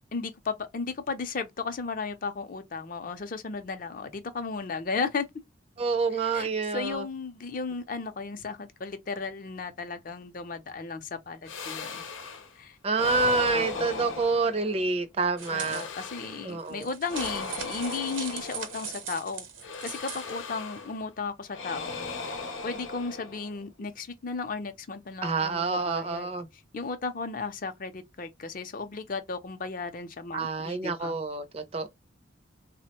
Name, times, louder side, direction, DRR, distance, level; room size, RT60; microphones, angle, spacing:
voice 1, 0.1-5.3 6.1-12.0 12.6-12.8 13.5-14.1 15.5-19.5 19.8-26.3 26.7-31.2, left 4 dB, 45° left, 0.5 m, -35 dB
voice 2, 5.8-7.0 12.8-15.8 16.5-16.9 25.2-26.5 30.3-31.9, right 4 dB, 30° right, 0.4 m, -28 dB
sound 1, 11.5-12.5 12.9-14.9 15.4-16.6 17.1-19.1 19.6-21.0 21.5-23.6, left 4 dB, 85° left, 0.7 m, -38 dB
sound 2, 15.4-15.9 16.6-20.3, right 8 dB, 85° right, 0.7 m, -40 dB
3.3 x 2.1 x 2.8 m
head